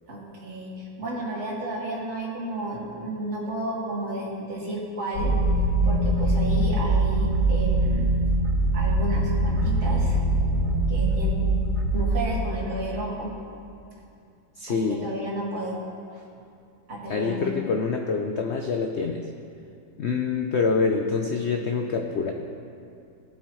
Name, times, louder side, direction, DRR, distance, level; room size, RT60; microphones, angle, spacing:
voice 1, 0.1-5.3 5.8-8.1 8.7-10.2 10.9-11.4 11.9-13.3 14.7-15.8 16.9-17.5 20.8-20.9, right 1 dB, 40° right, -5 dB, 2.3 m, -32 dB
sound 1, 5.1-12.2, right 1 dB, 60° left, 3.7 m, -23 dB
voice 2, 14.6-15.1 17.1-19.2 20.0-22.3, left 4 dB, 85° left, 3 dB, 0.6 m, -26 dB
17.5 x 8.1 x 3.1 m, 2.5 s
omnidirectional pair, 1.9 m